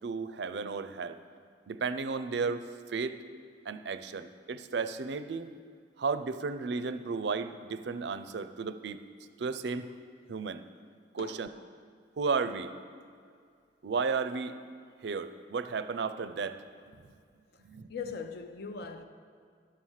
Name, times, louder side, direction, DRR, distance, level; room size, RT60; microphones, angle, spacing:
voice 1, 0.0-1.2 1.7-2.6 2.9-3.2 3.7-5.5 6.0-9.0 9.4-9.9 10.3-10.6 11.1-11.5 12.2-12.7 13.8-14.6 15.0-16.6 17.6-17.9, right 4 dB, 65° right, 0.4 m, -33 dB
voice 2, 11.2-11.7 17.5-17.6 17.9-19.0, left 5 dB, 60° left, 0.6 m, -41 dB
11.5 x 5.7 x 6.4 m
head